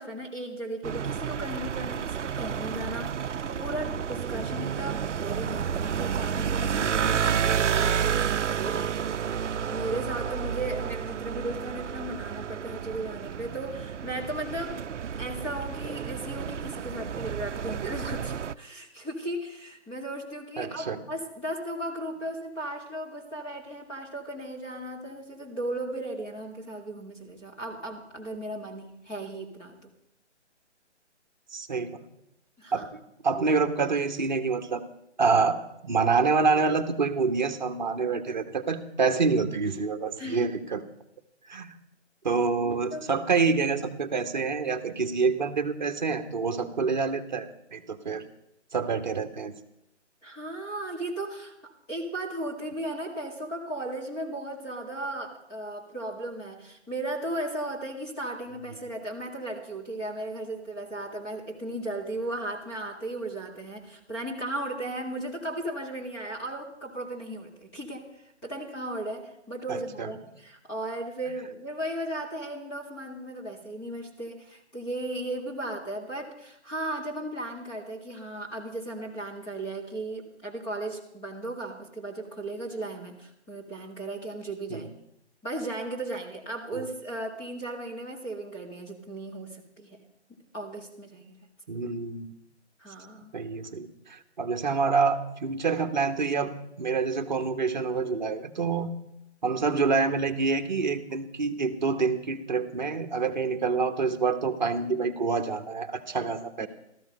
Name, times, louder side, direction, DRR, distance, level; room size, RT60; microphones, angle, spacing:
voice 1, 0.0-14.8 15.2-29.9 32.6-32.9 40.2-40.5 42.6-43.0 50.2-84.9 85.4-90.0 90.5-91.4 92.8-93.3 106.6-106.7, right 1 dB, 10° left, -4 dB, 2.0 m, -36 dB
sound 1, 0.8-18.5, right 8 dB, 75° right, 0.6 m, -30 dB
voice 2, 20.6-21.0 31.5-32.0 32.7-34.8 35.2-35.6 35.8-40.8 41.5-41.7 42.2-48.2 48.7-49.5 69.7-70.1 84.7-84.9 86.7-86.8 91.7-92.3 93.3-96.5 96.8-98.9 99.4-106.7, right 4 dB, 40° right, 7 dB, 1.3 m, -27 dB
16.0 x 14.0 x 5.3 m, 0.80 s
hypercardioid pair, 170°, 36 cm